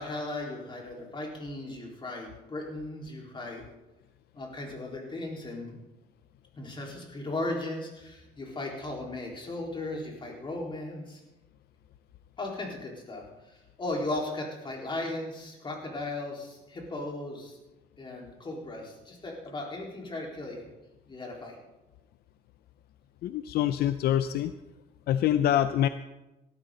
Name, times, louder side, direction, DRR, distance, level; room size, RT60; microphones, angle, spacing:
voice 1, 0.0-3.6 4.3-5.8 6.6-11.2 12.4-17.6 18.0-20.7 21.1-21.6, left 2 dB, 30° left, -1 dB, 4.2 m, -37 dB
voice 2, 23.2-24.5 25.1-25.9, left 11 dB, 70° left, 11 dB, 0.6 m, -25 dB
18.0 x 13.0 x 3.9 m, 1.0 s
cardioid pair, 110°, 17 cm